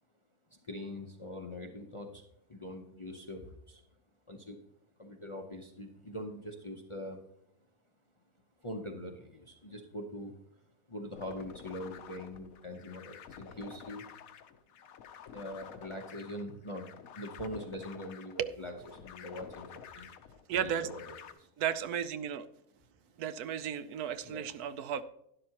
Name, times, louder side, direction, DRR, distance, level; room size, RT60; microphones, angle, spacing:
voice 1, 0.5-2.2 2.5-3.8 4.3-4.6 5.0-7.2 8.6-10.4 10.9-14.0 15.3-18.7 19.0-20.1 20.5-21.0 21.3-21.5 24.2-24.5, left 1 dB, 30° left, 3 dB, 0.6 m, -43 dB
sound 1, 11.2-21.3, left 8 dB, 70° left, 1.1 m, -51 dB
voice 2, 20.5-20.9 21.6-22.4 23.2-25.0, right 9 dB, 80° right, 13 dB, 1.1 m, -34 dB
11.5 x 11.0 x 2.9 m, 0.78 s
omnidirectional pair, 1.6 m